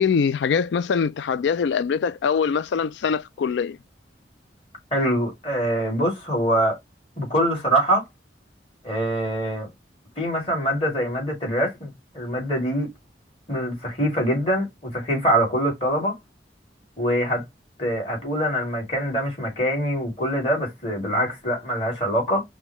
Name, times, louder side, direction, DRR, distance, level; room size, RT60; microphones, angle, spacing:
voice 1, 0.0-3.8, left 6 dB, 80° left, 0.3 m, -23 dB
voice 2, 4.9-6.8 7.2-8.0 8.8-9.7 10.2-12.9 13.5-16.2 17.0-17.4 17.8-22.4, equal, 35° left, 2.8 m, -24 dB
5.2 x 2.2 x 3.0 m
head